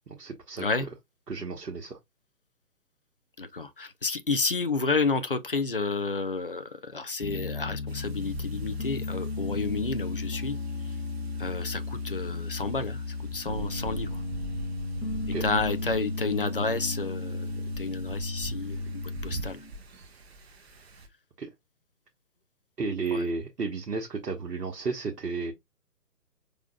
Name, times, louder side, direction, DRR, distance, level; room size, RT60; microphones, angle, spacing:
voice 1, 0.1-0.9 1.3-2.0 15.3-15.5 21.4-21.5 22.8-25.5, right 4 dB, 75° right, 1.2 m, -33 dB
voice 2, 3.4-10.6 11.4-13.0 13.3-14.2 15.4-17.5 17.8-19.6 23.1-23.2, left 3 dB, 40° left, 0.4 m, -30 dB
Piano, 7.2-19.7, left 3 dB, 85° left, 1.8 m, -34 dB
Wind, 7.9-21.1, right 2 dB, 40° right, 0.9 m, -45 dB
5.0 x 3.7 x 2.3 m
figure-of-eight pair, 140°, 48 cm